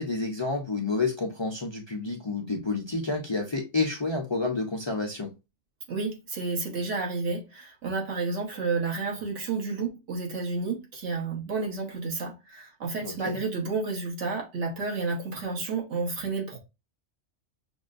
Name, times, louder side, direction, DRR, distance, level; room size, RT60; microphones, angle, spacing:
voice 1, 0.0-5.3 13.0-13.4, left 3 dB, 35° left, 0.5 m, -29 dB
voice 2, 5.9-16.6, right 4 dB, 85° right, 1.5 m, -31 dB
5.9 x 2.1 x 2.4 m
omnidirectional pair, 1.2 m